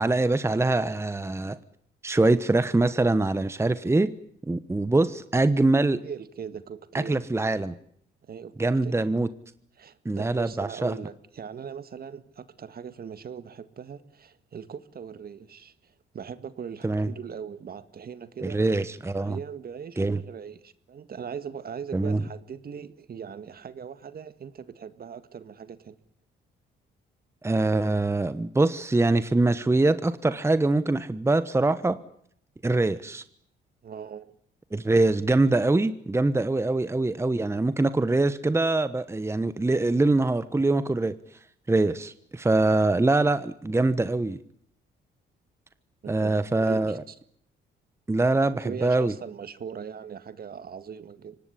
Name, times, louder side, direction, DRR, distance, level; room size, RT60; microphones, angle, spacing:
voice 1, 0.0-1.6 2.0-4.1 4.5-6.0 6.9-7.7 8.6-9.3 10.0-10.9 16.8-17.1 18.4-19.4 20.0-20.2 21.9-22.2 27.4-32.0 32.6-33.2 34.7-41.1 41.7-44.4 46.1-47.0 48.1-49.1, right 2 dB, 15° right, 13 dB, 1.1 m, -23 dB
voice 2, 6.0-7.2 8.3-9.1 9.8-18.6 19.2-26.0 33.8-34.3 46.0-47.2 48.5-51.4, right 7 dB, 50° right, 13 dB, 1.9 m, -40 dB
24.5 x 19.0 x 10.0 m, 0.67 s
cardioid pair, 90°, 20 cm